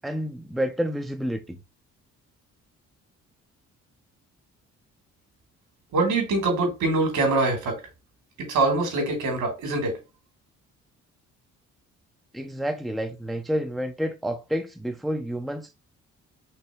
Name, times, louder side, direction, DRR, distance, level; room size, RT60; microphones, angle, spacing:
voice 1, 0.0-1.6 12.3-15.7, equal, ahead, 0.6 m, -29 dB
voice 2, 5.9-7.8 8.4-10.0, right 3 dB, 75° right, 3.0 m, -24 dB
5.6 x 3.0 x 3.0 m
cardioid pair, 90°, 30 cm